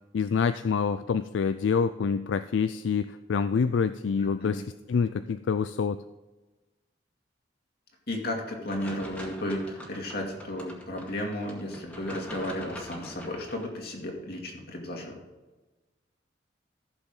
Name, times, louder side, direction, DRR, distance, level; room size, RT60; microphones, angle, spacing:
voice 1, 0.1-4.6 4.9-6.0, left 6 dB, 80° left, 12 dB, 0.4 m, -26 dB
voice 2, 4.2-4.6 8.1-15.2, left 1 dB, 55° left, 1 dB, 2.5 m, -34 dB
sound 1, 8.7-13.7, equal, 5° left, 2.0 m, -44 dB
15.0 x 7.1 x 3.8 m, 1.2 s
head